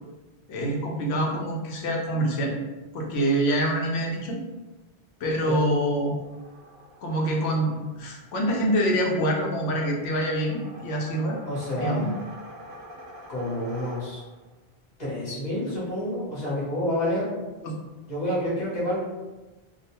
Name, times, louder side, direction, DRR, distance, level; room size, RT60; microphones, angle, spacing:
voice 1, 0.5-2.6 2.9-4.4 5.2-6.2 7.0-11.4 11.8-12.1 17.6-17.7, right 1 dB, 90° left, 0 dB, 0.9 m, -25 dB
sound 1, 6.2-14.5, equal, 60° right, 0.7 m, -46 dB
voice 2, 11.5-12.1 13.3-14.2 15.0-17.3 18.1-19.0, left 1 dB, 45° left, -7 dB, 0.9 m, -28 dB
2.3 x 2.1 x 2.8 m, 1.1 s
omnidirectional pair, 1.1 m